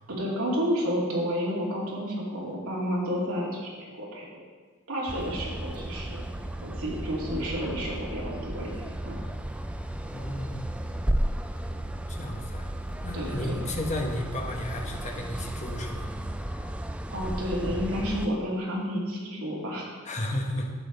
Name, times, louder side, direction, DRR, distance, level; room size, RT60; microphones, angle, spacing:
voice 1, 0.1-4.4 4.9-6.3 6.6-9.2 13.1-13.5 17.1-19.9, equal, 70° right, -4 dB, 2.6 m, -31 dB
sound 1, 5.1-18.3, right 1 dB, 5° right, 0.3 m, -34 dB
voice 2, 10.1-10.6 12.1-12.7 13.0-16.1 20.0-20.7, left 1 dB, 30° left, 1 dB, 1.1 m, -33 dB
11.5 x 7.7 x 4.0 m, 1.4 s
head